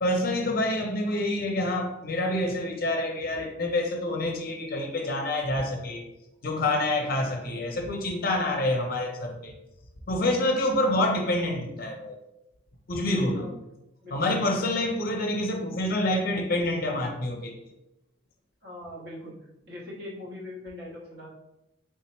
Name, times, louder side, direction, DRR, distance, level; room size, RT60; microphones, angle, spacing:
voice 1, 0.0-6.0 6.4-9.5 10.1-12.2 12.9-13.5 14.1-17.5, left 1 dB, 45° left, 3 dB, 0.5 m, -27 dB
voice 2, 18.6-19.3 19.7-21.3, left 1 dB, 55° right, -4 dB, 1.0 m, -41 dB
3.5 x 2.0 x 4.3 m, 0.89 s
head